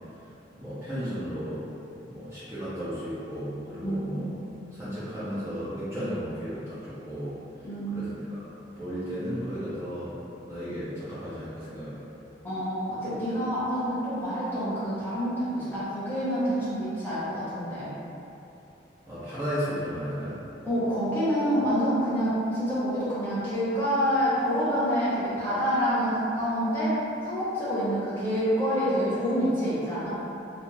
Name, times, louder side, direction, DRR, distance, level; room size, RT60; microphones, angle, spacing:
voice 1, 0.5-1.6 2.1-4.3 4.7-7.4 7.9-10.2 10.5-12.0 19.0-20.4, equal, 15° right, -14 dB, 0.6 m, -34 dB
voice 2, 3.8-4.2 7.6-8.0 12.4-17.9 20.6-27.0 27.2-30.1, equal, 10° left, -12 dB, 0.9 m, -27 dB
2.4 x 2.4 x 2.9 m, 2.8 s
head